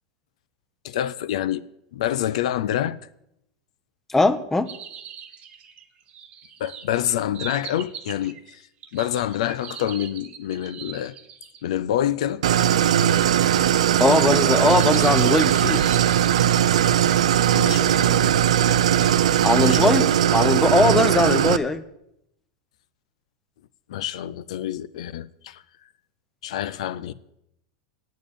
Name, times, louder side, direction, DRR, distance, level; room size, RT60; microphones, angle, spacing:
voice 1, 0.8-1.6 1.9-3.0 6.6-8.6 8.9-11.2 11.6-12.4 17.5-18.3 19.6-19.9 23.9-25.6 26.4-27.1, left 11 dB, 75° left, 0.5 m, -27 dB
voice 2, 4.1-4.7 14.0-15.8 19.4-21.8, left 2 dB, 10° left, 0.7 m, -20 dB
sound 1, 4.7-11.7 12.6-12.7 14.0-17.7 18.3-18.4 19.0-19.6 20.3-21.1, right 7 dB, 35° right, 1.2 m, -41 dB
Idling, 12.4-21.6, right 10 dB, 85° right, 0.6 m, -19 dB
9.3 x 7.2 x 8.9 m
supercardioid pair, 125°, 4 cm